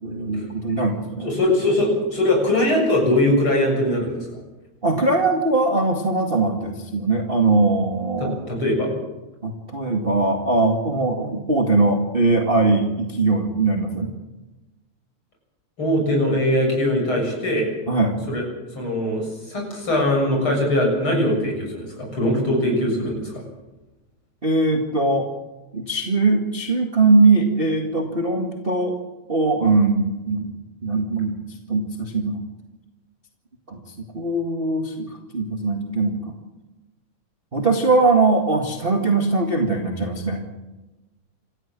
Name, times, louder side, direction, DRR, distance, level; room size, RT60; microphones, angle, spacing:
voice 1, 0.0-1.3 4.8-8.4 9.4-14.1 17.9-18.2 24.4-25.3 25.7-29.0 29.3-30.5 30.8-31.4 31.7-32.4 33.7-33.8 34.1-36.3 37.5-40.4, right 3 dB, 20° right, 2 dB, 1.8 m, -21 dB
voice 2, 1.2-4.3 8.2-8.9 15.8-17.7 18.3-18.4 18.7-23.4, left 1 dB, 45° left, 1 dB, 8.0 m, -21 dB
27.5 x 14.5 x 7.6 m, 1.1 s
omnidirectional pair, 3.4 m